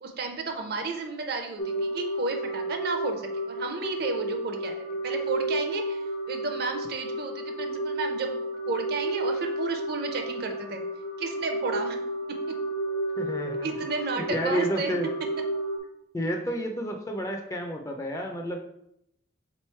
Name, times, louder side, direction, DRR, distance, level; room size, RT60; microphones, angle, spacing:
voice 1, 0.0-10.8 11.2-12.0 12.5-12.6 13.6-14.9, right 3 dB, 55° right, 4 dB, 0.5 m, -33 dB
sound 1, 1.6-15.8, right 1 dB, 80° left, 0.8 m, -32 dB
voice 2, 13.2-13.7 14.1-15.1 16.1-18.6, equal, 15° left, 3 dB, 0.4 m, -30 dB
3.8 x 3.0 x 4.3 m, 0.78 s
head